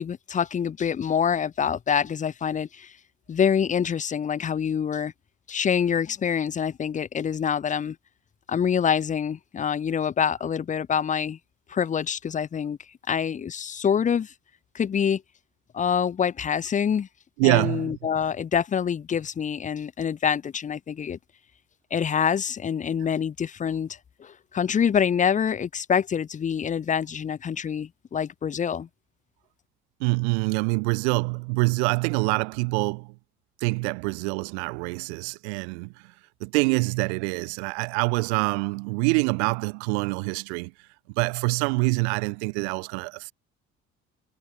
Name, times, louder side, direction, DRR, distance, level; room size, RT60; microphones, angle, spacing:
voice 1, 0.0-2.9 3.3-5.1 5.5-8.0 8.5-11.4 11.7-12.8 13.1-14.3 14.7-15.2 15.7-17.1 17.4-21.2 21.9-28.9, left 7 dB, 25° left, 0.4 m, -26 dB
voice 2, 17.4-18.0 30.0-33.1 33.6-36.1 36.4-40.7 41.2-43.3, right 32 dB, 85° right, 1.2 m, -25 dB
hypercardioid pair, 60°, 32 cm